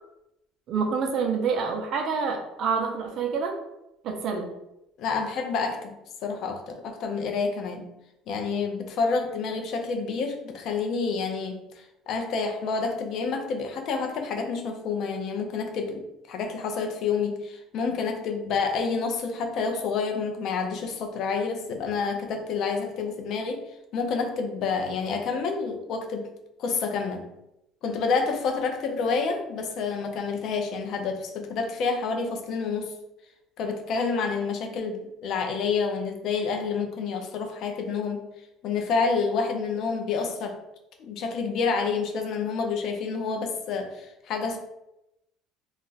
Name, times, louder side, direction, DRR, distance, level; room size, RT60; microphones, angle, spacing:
voice 1, 0.7-3.6 4.0-4.5, right 5 dB, 50° right, 4 dB, 0.5 m, -27 dB
voice 2, 5.0-5.9 6.2-7.9 8.3-11.6 12.1-23.6 23.9-26.3 26.6-27.3 27.8-32.9 33.6-38.2 38.6-40.6 41.0-44.6, left 5 dB, 50° left, 4 dB, 0.5 m, -28 dB
2.4 x 2.1 x 3.9 m, 0.88 s
cardioid pair, 155°, 0 cm